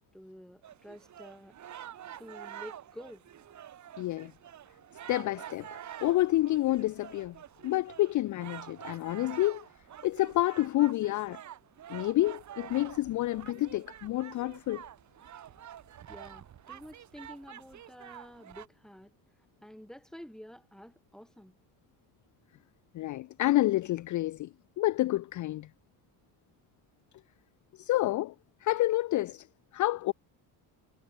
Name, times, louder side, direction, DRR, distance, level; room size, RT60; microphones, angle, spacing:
voice 1, 0.1-1.5 2.2-3.2 16.1-19.1 19.6-21.5, equal, ahead, 4.4 m, -49 dB
sound 1, 0.6-18.7, right 10 dB, 40° right, 1.2 m, -48 dB
voice 2, 4.0-4.3 5.1-7.4 7.6-9.6 10.0-11.4 11.9-14.8 22.9-24.5 24.8-25.7 27.8-28.3 28.6-29.5 29.7-30.1, left 16 dB, 45° left, 0.4 m, -29 dB
cardioid pair, 120°, 43 cm